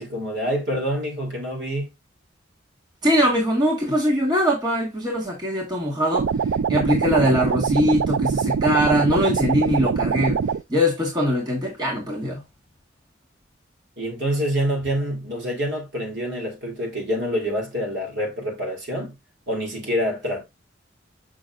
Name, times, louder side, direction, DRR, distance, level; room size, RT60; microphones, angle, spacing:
voice 1, 0.0-1.9 14.0-19.1 19.5-20.4, equal, 60° right, 3.1 m, -26 dB
voice 2, 3.0-6.3 6.7-10.4 10.7-12.4, equal, 20° right, 1.6 m, -22 dB
sound 1, 6.1-10.6, right 6 dB, 85° right, 0.4 m, -23 dB
6.5 x 6.1 x 2.5 m
head